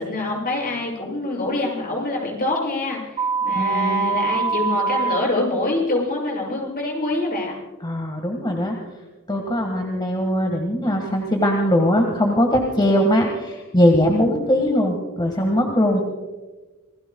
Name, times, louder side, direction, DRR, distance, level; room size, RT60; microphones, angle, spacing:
voice 1, 0.0-7.6, left 2 dB, 45° left, -2 dB, 7.0 m, -25 dB
sound 1, 3.2-5.2, right 5 dB, 30° right, 1.5 m, -23 dB
voice 2, 3.5-4.2 7.8-8.8 9.3-16.0, equal, 20° left, 2 dB, 1.7 m, -20 dB
27.5 x 20.0 x 2.3 m, 1.2 s
head